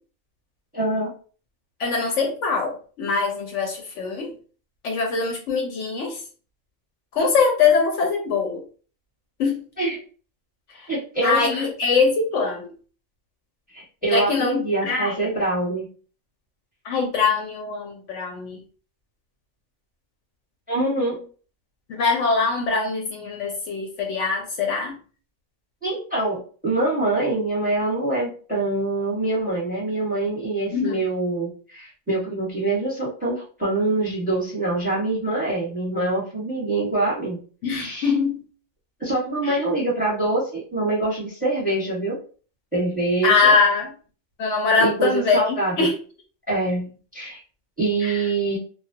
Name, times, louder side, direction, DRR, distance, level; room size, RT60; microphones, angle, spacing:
voice 1, 0.7-1.1 9.8-10.0 10.9-11.6 13.7-15.9 20.7-21.3 25.8-37.4 37.7-38.1 39.0-42.2 42.7-43.5 44.8-45.9 46.5-47.4 47.8-48.6, right 2 dB, 5° right, -5 dB, 0.8 m, -25 dB
voice 2, 1.8-4.3 4.8-6.2 7.1-8.6 9.4-9.6 10.7-10.9 11.2-12.7 14.1-15.3 16.8-18.6 21.9-25.0 30.7-31.0 37.6-38.4 39.4-39.6 43.2-43.9 44.4-45.9 48.0-48.2, left 4 dB, 70° left, 1 dB, 0.8 m, -22 dB
2.3 x 2.1 x 2.6 m, 0.39 s
omnidirectional pair, 1.4 m